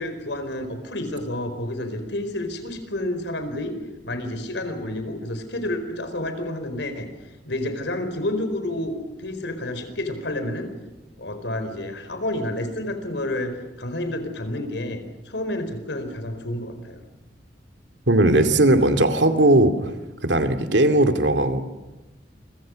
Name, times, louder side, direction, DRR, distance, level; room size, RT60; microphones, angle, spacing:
voice 1, 0.0-3.7 4.0-7.1 7.5-10.7 11.2-15.0 15.2-17.0, left 1 dB, 75° left, 8 dB, 4.6 m, -29 dB
voice 2, 18.1-19.9 20.2-21.6, right 1 dB, 80° right, 7 dB, 2.4 m, -18 dB
28.5 x 24.0 x 6.4 m, 1.1 s
head